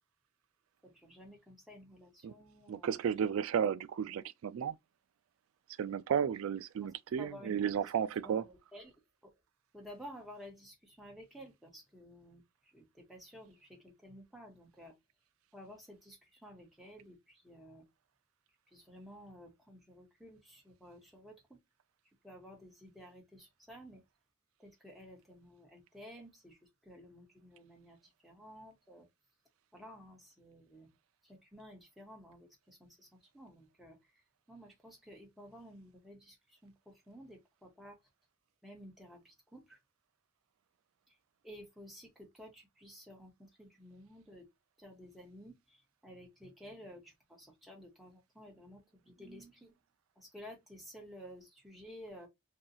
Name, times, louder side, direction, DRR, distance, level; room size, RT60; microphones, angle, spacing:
voice 1, 0.8-3.0 6.8-7.9 8.2-8.9 9.7-14.9 15.5-17.8 18.7-21.6 22.2-24.0 24.6-29.1 29.7-30.9 31.2-38.0 38.6-39.8 41.1-41.2 41.4-44.5 44.8-49.7 50.2-52.3, equal, ahead, 1.0 m, -53 dB
voice 2, 2.7-4.8 5.8-8.4, right 8 dB, 90° right, 0.3 m, -33 dB
2.7 x 2.4 x 3.9 m
head